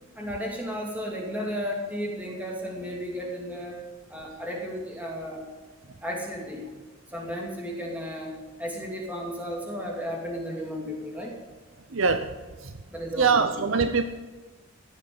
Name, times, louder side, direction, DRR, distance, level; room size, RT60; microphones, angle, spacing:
voice 1, 0.2-3.8 4.1-5.4 6.0-6.6 7.1-11.3 12.9-13.6, equal, 5° right, -2 dB, 2.6 m, -34 dB
voice 2, 11.9-12.3 13.1-14.0, right 5 dB, 65° right, 9 dB, 0.7 m, -22 dB
16.0 x 7.4 x 8.6 m, 1.3 s
head